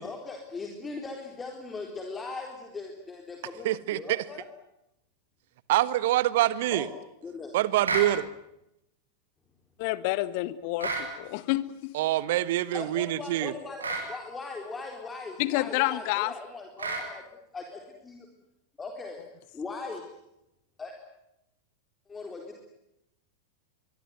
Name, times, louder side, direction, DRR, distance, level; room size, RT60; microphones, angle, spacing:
voice 1, 0.0-4.4 6.7-6.9 7.2-7.5 12.7-17.2 17.5-18.3 18.8-19.2 19.5-20.0 20.8-20.9 22.1-22.7, left 3 dB, 15° left, 4.1 m, -39 dB
voice 2, 3.6-4.2 5.7-6.9 7.5-8.3 11.9-13.5, right 14 dB, 55° right, 1.5 m, -25 dB
sound 1, 7.8-8.1 10.8-11.1 13.8-14.1 16.8-17.1, right 3 dB, 75° right, 7.7 m, -30 dB
voice 3, 9.8-11.9 15.4-16.3, left 17 dB, 45° left, 1.6 m, -29 dB
24.0 x 23.0 x 9.4 m
figure-of-eight pair, 90°, 0 cm